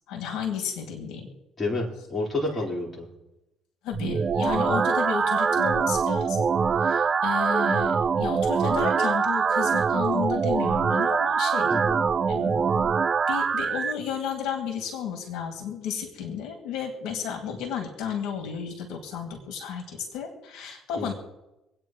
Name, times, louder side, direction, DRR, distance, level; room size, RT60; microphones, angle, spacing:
voice 1, 0.1-1.3 3.8-11.8 12.3-12.9 13.3-21.1, left 7 dB, 80° left, 2 dB, 2.3 m, -32 dB
voice 2, 1.6-3.1 11.7-12.0 21.0-21.1, left 2 dB, 25° left, -3 dB, 4.2 m, -29 dB
sound 1, 3.9-13.9, right 6 dB, 40° right, 0.4 m, -24 dB
26.0 x 9.1 x 3.1 m, 0.97 s
cardioid pair, 100°, 0 cm